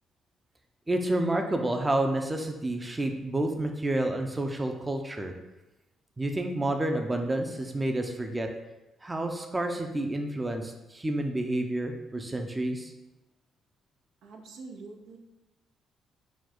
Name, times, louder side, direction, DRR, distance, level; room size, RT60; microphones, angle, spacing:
voice 1, 0.9-5.3 6.2-8.5 9.0-12.9, right 1 dB, 20° right, 4 dB, 0.5 m, -29 dB
voice 2, 14.2-15.2, right 3 dB, 80° right, 2 dB, 0.6 m, -45 dB
4.2 x 2.3 x 4.4 m, 0.99 s
supercardioid pair, 65°, 0 cm